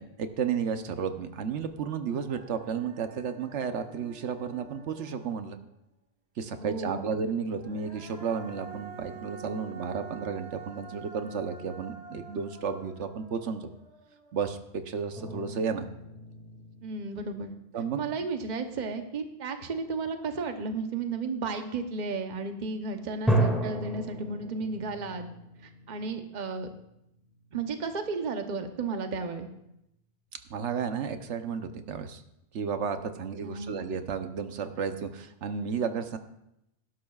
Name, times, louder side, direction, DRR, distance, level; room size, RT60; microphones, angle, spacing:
voice 1, 0.0-5.6 6.4-13.7 14.3-15.9 17.7-18.0 30.5-32.2 32.5-36.2, right 6 dB, 85° right, 8 dB, 1.1 m, -32 dB
Human voice, 1.6-1.7 2.1-5.7 7.4-14.7, right 5 dB, 65° right, 2.0 m, -48 dB
voice 2, 6.6-7.0 16.8-17.5 18.0-25.3 25.6-26.7 27.5-29.5 33.4-33.8, right 4 dB, 45° right, 6 dB, 1.0 m, -33 dB
sound 1, 15.1-18.1 18.7-19.0 23.3-27.6, right 1 dB, ahead, 2.1 m, -33 dB
17.5 x 11.5 x 2.4 m, 0.83 s
omnidirectional pair, 1.2 m